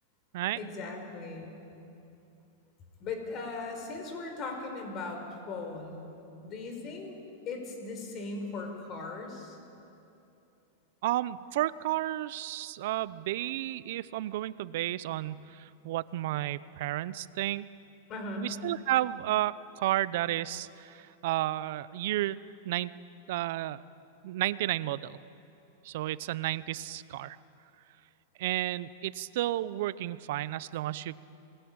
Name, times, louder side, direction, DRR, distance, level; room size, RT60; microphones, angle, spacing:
voice 1, 0.5-1.5 3.0-6.1 6.4-7.2 7.4-9.6 18.1-18.5, left 3 dB, 30° left, 4 dB, 5.1 m, -38 dB
voice 2, 11.0-17.7 18.4-22.4 22.6-22.9 23.3-23.8 24.2-25.2 25.8-27.4 28.4-31.2, right 15 dB, 60° right, 17 dB, 0.8 m, -32 dB
27.5 x 20.5 x 8.8 m, 2.8 s
supercardioid pair, 140°, 0 cm